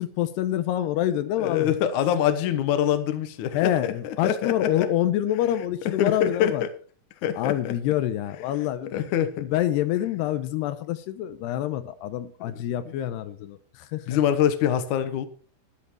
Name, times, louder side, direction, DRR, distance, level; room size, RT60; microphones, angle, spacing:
voice 1, 0.0-1.7 3.5-6.6 7.4-9.0 9.4-14.2, left 12 dB, 85° left, 2.8 m, -26 dB
voice 2, 1.4-4.9 5.9-6.7 7.2-7.7 8.9-9.5 14.1-15.3, left 10 dB, 65° left, 2.0 m, -25 dB
12.0 x 11.0 x 4.6 m
omnidirectional pair, 4.8 m